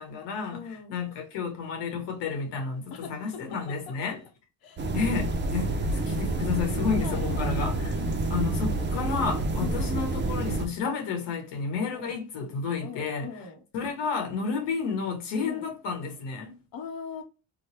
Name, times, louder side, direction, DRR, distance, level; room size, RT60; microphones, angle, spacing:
voice 1, 0.0-0.6 0.9-4.2 4.9-8.0 8.3-13.3 13.7-16.6, left 5 dB, 80° left, 1.1 m, -31 dB
voice 2, 0.5-1.0 2.9-4.2 4.6-4.8 7.0-7.5 9.6-9.9 11.9-12.2 12.8-13.6 15.4-15.7 16.7-17.2, left 6 dB, 55° left, 0.9 m, -40 dB
sound 1, 4.8-10.7, right 2 dB, 25° right, 0.5 m, -28 dB
3.0 x 2.2 x 3.1 m
cardioid pair, 90°, 42 cm